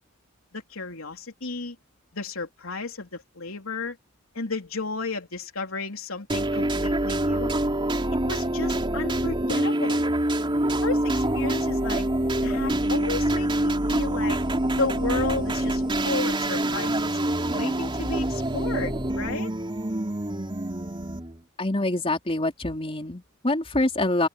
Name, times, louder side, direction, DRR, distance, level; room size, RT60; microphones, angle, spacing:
voice 1, 0.5-1.8 2.1-4.0 4.3-7.5 8.3-10.0 10.8-12.1 12.4-14.4 14.7-17.2 17.5-19.5, left 3 dB, 85° left, 3.4 m, -33 dB
sound 1, 6.3-21.4, right 1 dB, 25° right, 3.5 m, -26 dB
voice 2, 21.6-24.3, left 2 dB, 30° left, 4.2 m, -25 dB
open air
head